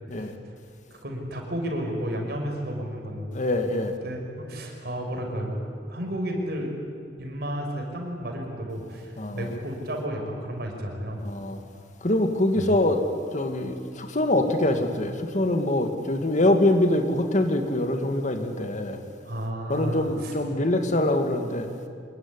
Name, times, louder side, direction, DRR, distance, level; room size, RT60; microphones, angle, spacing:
voice 1, 0.9-3.3 4.0-5.6 5.9-6.7 7.2-11.2 12.6-12.7 19.3-20.3, equal, 60° right, 2 dB, 5.8 m, -32 dB
voice 2, 3.3-4.0 9.2-9.6 11.2-11.6 12.0-13.0 13.3-19.0 19.7-21.7, left 1 dB, 45° left, 6 dB, 2.2 m, -24 dB
25.5 x 21.0 x 9.8 m, 2.2 s
head